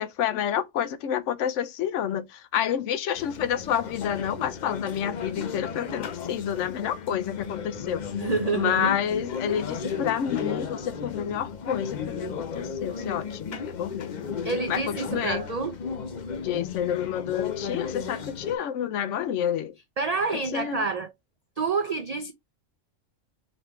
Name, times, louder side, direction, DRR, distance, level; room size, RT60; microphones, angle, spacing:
voice 1, 0.0-8.0 8.5-14.3 14.7-15.4 16.4-19.7 20.3-20.9, left 9 dB, 75° left, 0.9 m, -29 dB
sound 1, 3.2-18.6, left 6 dB, 45° left, 0.6 m, -35 dB
voice 2, 8.2-8.9 14.4-15.7 20.0-21.1 21.6-22.3, right 4 dB, 75° right, 0.3 m, -28 dB
4.1 x 3.3 x 3.0 m
omnidirectional pair, 1.3 m